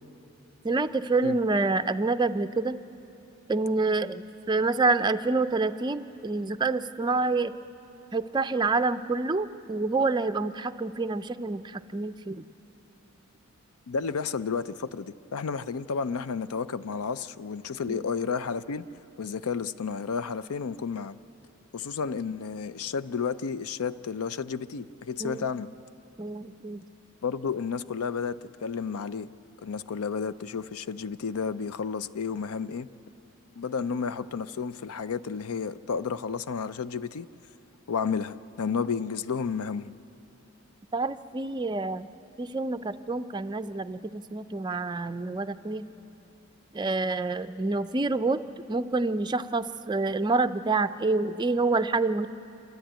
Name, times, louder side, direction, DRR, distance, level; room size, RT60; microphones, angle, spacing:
voice 1, 0.6-2.8 3.5-7.5 8.1-12.4 17.9-18.1 25.2-25.5 26.2-26.8 40.9-42.1 42.4-45.9 46.7-48.4 48.7-52.3, right 3 dB, 20° right, 11 dB, 0.4 m, -27 dB
voice 2, 13.9-18.8 19.2-21.2 21.7-25.7 27.2-29.3 29.6-32.9 33.6-37.3 37.9-39.9, left 5 dB, 85° left, 15 dB, 0.5 m, -31 dB
27.5 x 13.0 x 8.9 m, 3.0 s
head